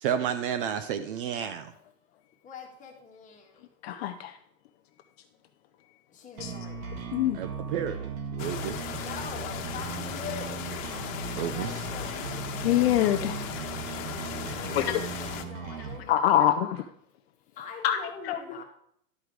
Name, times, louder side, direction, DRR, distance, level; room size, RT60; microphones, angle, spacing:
voice 1, 0.0-1.7 7.3-8.8 11.4-11.8, right 8 dB, 40° right, 11 dB, 0.5 m, -31 dB
voice 2, 2.4-3.7 6.1-6.9 9.0-10.6 11.4-13.0 14.5-15.0 15.4-16.2 17.6-18.6, left 6 dB, 20° left, 0 dB, 1.6 m, -43 dB
voice 3, 3.8-4.3 6.4-6.5 7.1-7.4 12.6-13.4 14.7-15.3 15.8-16.9 17.8-18.0 18.2-18.6, left 12 dB, 45° left, 8 dB, 0.5 m, -25 dB
sound 1, 6.4-16.0, right 6 dB, 65° right, 1.7 m, -38 dB
sound 2, 8.4-15.4, left 9 dB, 60° left, 1.3 m, -37 dB
11.5 x 5.0 x 4.7 m, 0.70 s
supercardioid pair, 155°, 43 cm